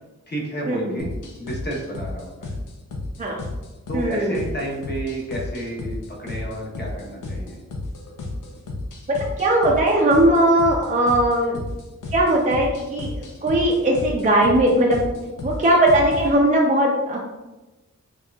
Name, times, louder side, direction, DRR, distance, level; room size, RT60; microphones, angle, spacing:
voice 1, 0.3-1.1 1.4-2.5 3.9-7.6, right 1 dB, 35° left, -3 dB, 1.0 m, -31 dB
sound 1, 1.0-16.3, left 2 dB, 90° left, 0.6 m, -33 dB
voice 2, 3.9-4.4 9.4-11.6 12.1-13.1 13.4-15.0 15.4-17.2, right 1 dB, 25° right, -2 dB, 0.5 m, -18 dB
4.4 x 2.4 x 2.3 m, 1.1 s
wide cardioid pair, 70°, 30 cm